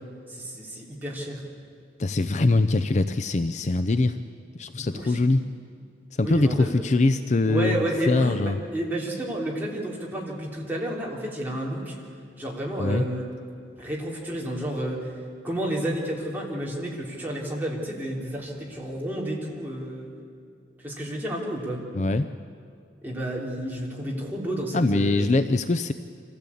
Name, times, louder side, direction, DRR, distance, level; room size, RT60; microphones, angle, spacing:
voice 1, 0.3-1.4 4.8-5.2 6.2-6.7 7.5-11.9 12.4-13.3 13.8-15.1 15.4-20.1 20.8-21.8 23.0-25.3, right 1 dB, 10° right, -4 dB, 3.4 m, -31 dB
voice 2, 2.0-4.2 4.5-5.4 6.2-8.6 12.8-13.1 21.9-22.3 24.7-25.9, left 2 dB, 40° left, 10 dB, 0.5 m, -23 dB
25.5 x 15.5 x 8.5 m, 2.4 s
head